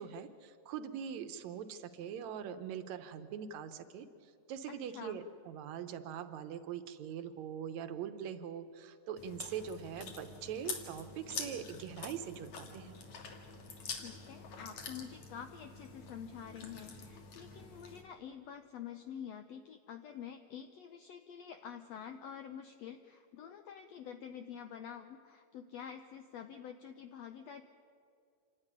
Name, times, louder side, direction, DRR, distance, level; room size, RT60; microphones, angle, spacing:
voice 1, 0.0-13.0, right 8 dB, 70° right, 9 dB, 2.1 m, -42 dB
voice 2, 4.7-5.2 14.0-27.6, left 8 dB, 75° left, 7 dB, 1.6 m, -48 dB
Chewing mastication, 9.2-18.0, left 5 dB, 60° left, 3.2 m, -46 dB
27.0 x 12.5 x 9.9 m, 2.4 s
omnidirectional pair, 3.8 m